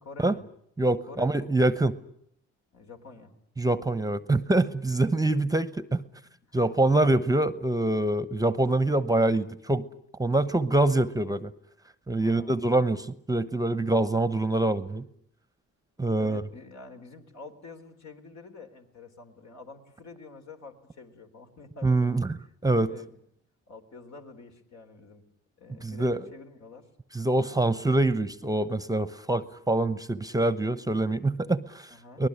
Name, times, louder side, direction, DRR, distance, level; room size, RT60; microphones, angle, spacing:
voice 1, 0.0-0.4 1.1-1.5 2.7-3.3 4.9-5.0 5.9-6.0 6.4-6.6 12.2-12.7 16.2-22.2 22.7-23.3 23.7-25.3 25.6-26.9 31.9-32.2, left 4 dB, 65° left, 5 dB, 4.0 m, -47 dB
voice 2, 0.8-2.0 3.6-6.0 6.5-9.9 10.2-11.5 12.1-15.1 16.0-16.4 21.8-22.4 22.6-22.9 25.8-26.2 27.1-32.3, right 2 dB, 10° right, 15 dB, 1.0 m, -25 dB
23.0 x 20.0 x 9.9 m, 0.72 s
cardioid pair, 90°, 30 cm